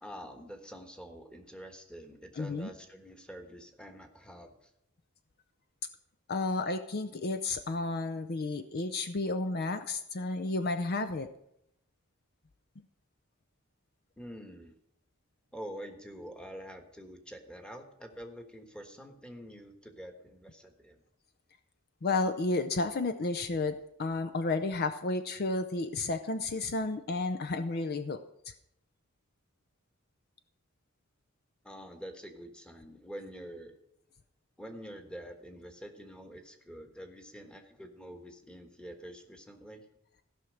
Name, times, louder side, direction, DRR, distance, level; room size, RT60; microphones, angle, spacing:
voice 1, 0.0-4.7 14.2-14.7 15.5-21.0 31.6-33.8 34.6-39.8, equal, 5° left, 5 dB, 1.3 m, -46 dB
voice 2, 2.4-2.7 6.3-11.3 22.0-28.2 28.5-28.6, left 3 dB, 50° left, 9 dB, 0.6 m, -32 dB
15.5 x 5.9 x 6.3 m, 0.77 s
head